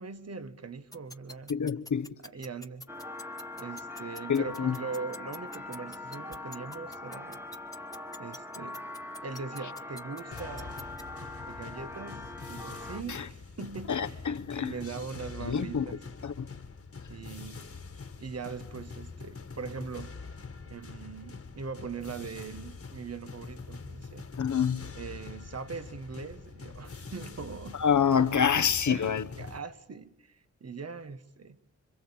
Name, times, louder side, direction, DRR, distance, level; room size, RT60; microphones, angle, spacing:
voice 1, 0.0-1.5 2.2-2.9 3.6-7.4 8.1-8.8 9.2-10.8 11.4-14.2 14.5-16.0 17.1-17.6 18.2-20.2 20.7-24.3 24.9-27.8 28.5-29.1 29.4-31.6, right 5 dB, 55° right, 1.5 m, -41 dB
sound 1, 0.9-11.0, left 2 dB, 10° left, 1.5 m, -45 dB
voice 2, 1.5-2.1 4.3-4.8 13.1-13.2 13.9-14.7 15.4-15.9 16.2-16.5 24.4-24.8 27.8-29.3, left 7 dB, 80° left, 1.2 m, -27 dB
sound 2, 2.9-13.0, left 2 dB, 10° right, 1.5 m, -42 dB
sound 3, 10.3-29.6, left 4 dB, 50° left, 1.8 m, -44 dB
27.0 x 25.0 x 8.7 m
wide cardioid pair, 95°, 29 cm